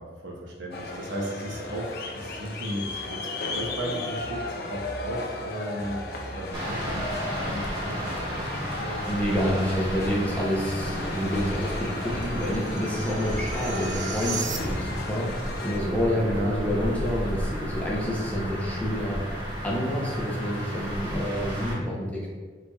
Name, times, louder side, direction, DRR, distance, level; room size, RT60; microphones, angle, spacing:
voice 1, 0.0-6.1 6.3-9.1 10.8-11.0 16.2-16.9, equal, 90° right, -2 dB, 0.7 m, -35 dB
sound 1, 0.7-15.8, left 2 dB, 55° left, 0.4 m, -36 dB
sound 2, 6.5-21.7, equal, 25° right, 1.0 m, -33 dB
voice 2, 9.1-19.2 19.6-22.3, equal, 10° left, -4 dB, 0.6 m, -28 dB
sound 3, 10.1-15.1, right 4 dB, 40° right, 0.3 m, -37 dB
3.9 x 3.2 x 2.3 m, 1.5 s
head